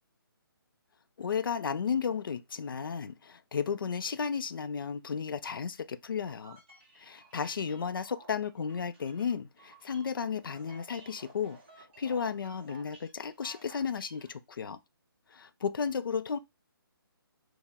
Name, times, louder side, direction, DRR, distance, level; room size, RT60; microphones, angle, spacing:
voice 1, 1.2-6.6 7.0-14.8 15.3-16.4, left 6 dB, 65° left, 0.4 m, -34 dB
sound 1, 6.2-14.3, right 2 dB, 30° right, 0.8 m, -55 dB
4.6 x 2.0 x 3.4 m
hypercardioid pair, 180°, 12 cm